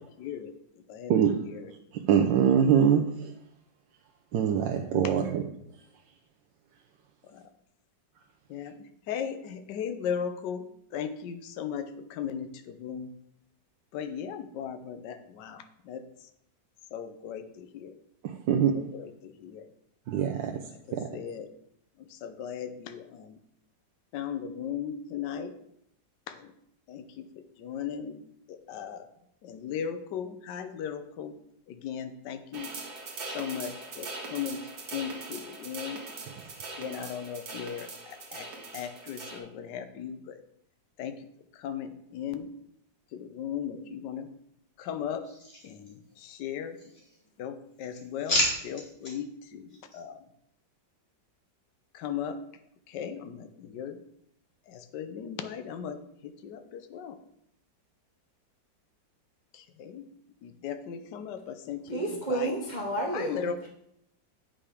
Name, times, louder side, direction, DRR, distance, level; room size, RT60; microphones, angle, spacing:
voice 1, 0.2-0.5 0.9-1.1 8.5-8.7 9.1-10.6 10.9-13.1 13.9-16.0 16.9-17.9 19.2-19.6 21.1-21.4 22.2-23.3 24.1-25.5 26.9-27.0 27.6-28.2 28.7-29.0 29.4-31.3 31.7-32.7 33.3-34.6 34.9-36.0 36.8-38.4 38.7-40.4 41.0-41.2 41.6-42.5 43.1-44.3 44.8-45.2 45.6-45.9 46.2-46.8 47.4-49.3 49.5-49.7 49.9-50.2 51.9-52.4 52.9-54.0 54.7-56.0 56.4-57.2 59.8-60.0 60.4-62.0 62.3-62.5 63.1-63.7, left 8 dB, 70° left, 9 dB, 1.3 m, -36 dB
voice 2, 1.1-3.3 4.3-5.5 18.2-18.7 20.1-20.6 20.9-21.2 36.3-36.4, right 8 dB, 75° right, 2 dB, 1.4 m, -24 dB
sound 1, 32.5-39.4, right 3 dB, 55° right, 1.8 m, -41 dB
sound 2, 45.2-46.3 46.7-47.4 47.7-49.1 49.7-50.0, left 1 dB, 30° left, 2.2 m, -33 dB
voice 3, 61.8-63.7, right 2 dB, 30° right, -1 dB, 1.0 m, -31 dB
8.8 x 5.8 x 5.0 m, 0.73 s
omnidirectional pair, 2.0 m